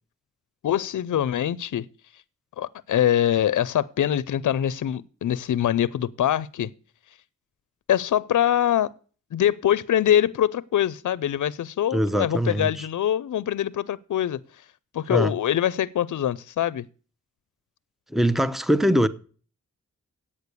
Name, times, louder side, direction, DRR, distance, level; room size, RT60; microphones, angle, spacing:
voice 1, 0.6-1.9 2.6-6.7 7.9-8.9 9.3-14.4 14.9-16.8, left 10 dB, 75° left, 0.5 m, -23 dB
voice 2, 11.9-12.9 15.1-15.3 18.1-19.1, equal, ahead, 0.8 m, -22 dB
8.6 x 6.7 x 8.2 m
cardioid pair, 45°, 30 cm